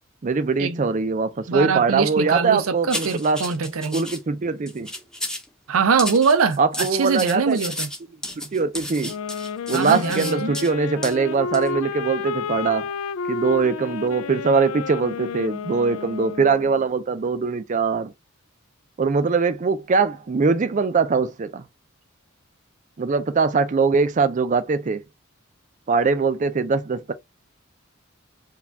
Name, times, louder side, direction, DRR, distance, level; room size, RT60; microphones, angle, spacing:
voice 1, 0.2-3.4 3.9-4.9 6.6-7.6 8.5-9.1 9.7-12.9 13.3-18.1 19.0-21.6 23.0-25.0 25.9-27.1, right 4 dB, 35° right, 0.4 m, -22 dB
voice 2, 1.5-4.1 5.7-7.9 9.7-10.5, right 5 dB, 85° right, 0.5 m, -23 dB
sound 1, 2.9-4.2 4.7-5.5 6.0-10.7 11.0-11.2 11.5-11.7, left 1 dB, 5° left, 0.6 m, -32 dB
sound 2, 9.0-16.9, left 5 dB, 90° left, 0.3 m, -31 dB
4.7 x 2.3 x 3.4 m
head